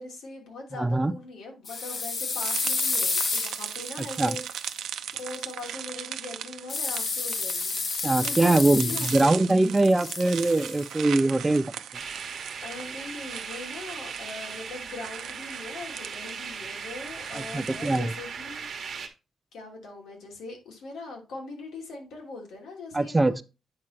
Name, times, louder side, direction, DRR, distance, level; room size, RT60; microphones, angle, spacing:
voice 1, 0.0-4.4 5.2-9.7 12.6-18.7 19.5-23.4, left 3 dB, 90° left, 3.0 m, -41 dB
voice 2, 0.8-1.1 4.0-4.4 8.0-11.7 17.3-18.1 22.9-23.4, right 2 dB, 10° right, 0.3 m, -23 dB
sound 1, 1.7-4.7 6.7-9.5 9.8-10.8, left 4 dB, 40° left, 0.9 m, -30 dB
sound 2, 2.4-18.0, right 10 dB, 90° right, 0.6 m, -39 dB
sound 3, 11.9-19.1, right 6 dB, 45° right, 1.2 m, -38 dB
8.7 x 5.9 x 3.2 m
wide cardioid pair, 180°, 0 cm